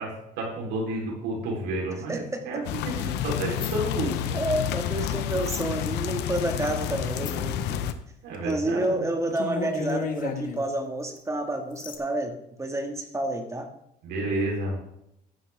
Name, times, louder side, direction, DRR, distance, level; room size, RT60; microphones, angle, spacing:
voice 1, 0.0-4.4 8.2-9.1 14.0-14.8, right 2 dB, 85° right, -2 dB, 4.3 m, -31 dB
voice 2, 2.1-2.6 4.3-8.0 8.4-13.7, right 1 dB, 15° right, 4 dB, 2.2 m, -29 dB
sound 1, 2.6-7.9, left 11 dB, 90° left, 0.9 m, -29 dB
sound 2, 3.6-3.8 5.3-5.7 7.2-7.5 8.3-8.6 8.8-8.9 9.3-10.7 11.2-11.3 11.8-12.0, left 5 dB, 55° left, 1.7 m, -33 dB
13.0 x 10.0 x 3.7 m, 0.79 s
cardioid pair, 110°, 17 cm